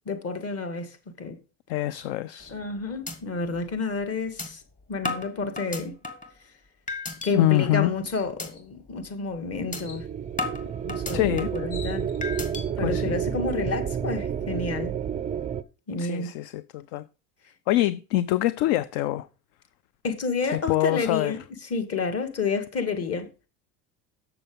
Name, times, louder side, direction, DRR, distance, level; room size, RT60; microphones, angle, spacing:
voice 1, 0.1-1.4 2.5-4.6 4.9-6.0 7.2-10.1 10.8-12.1 12.8-14.9 15.9-16.3 20.0-21.4 21.7-23.3, left 4 dB, 30° left, 1.9 m, -30 dB
voice 2, 1.7-2.5 7.3-7.9 11.1-11.5 12.8-13.2 16.0-17.0 17.7-19.3 20.5-21.3, left 15 dB, 60° left, 0.6 m, -25 dB
sound 1, 2.4-2.7 3.1-3.2 3.6-3.7 4.4-4.5 5.0-6.3 6.9-7.3 7.7-8.0 8.4-8.5 8.9-9.1 9.7-9.8 10.4-11.6 12.2-12.6, left 3 dB, 15° left, 1.8 m, -33 dB
sound 2, 7.1-7.3 7.7-7.8 8.1-8.6 9.7-10.0 11.2-11.3 11.5-12.4, left 5 dB, 75° left, 2.7 m, -46 dB
sound 3, 9.5-15.6, right 8 dB, 20° right, 0.4 m, -30 dB
7.1 x 6.9 x 5.3 m
supercardioid pair, 95°, 46 cm